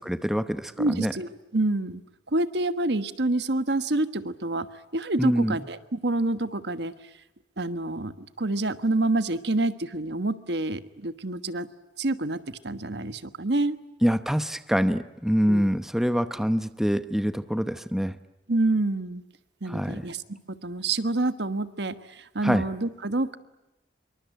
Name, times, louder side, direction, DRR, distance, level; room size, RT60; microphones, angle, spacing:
voice 1, 0.0-1.1 5.2-5.6 14.0-18.2 19.7-20.0 22.4-22.6, equal, ahead, 10 dB, 0.9 m, -25 dB
voice 2, 0.8-2.0 2.3-4.7 4.9-6.9 7.6-11.7 12.0-13.8 15.5-15.7 18.5-19.2 19.6-20.2 20.5-23.4, right 2 dB, 75° right, 11 dB, 1.3 m, -27 dB
26.5 x 24.0 x 9.2 m, 0.97 s
head